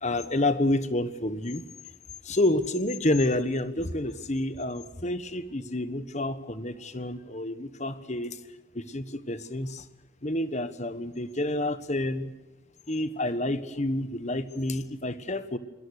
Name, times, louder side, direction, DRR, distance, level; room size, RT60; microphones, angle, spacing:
voice 1, 0.0-1.6 2.2-8.4 8.7-9.8 10.2-12.3 12.9-15.6, left 1 dB, 35° left, 13 dB, 1.2 m, -29 dB
27.5 x 20.0 x 6.5 m, 1.1 s
head